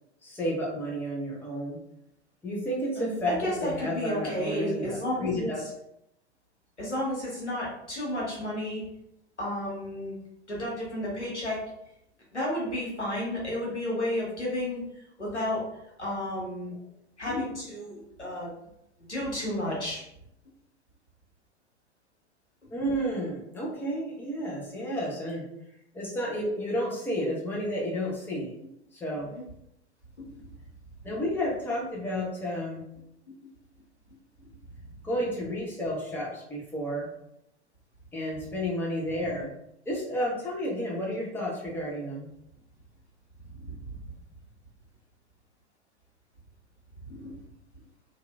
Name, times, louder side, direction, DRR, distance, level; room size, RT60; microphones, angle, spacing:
voice 1, 0.2-1.8 2.4-5.6 22.7-25.4 25.9-28.5 28.9-29.3 31.0-32.8 35.0-37.1 38.1-39.5 39.9-42.3, equal, 5° left, -4 dB, 0.7 m, -31 dB
voice 2, 3.0-5.5 6.8-8.8 9.4-10.2 10.5-11.6 12.3-15.6 16.0-16.8 17.2-18.5 19.1-20.0 29.3-29.4 43.7-43.8 47.1-47.4, left 1 dB, 90° left, -5 dB, 1.0 m, -32 dB
2.8 x 2.5 x 2.3 m, 0.78 s
figure-of-eight pair, 90°, 34 cm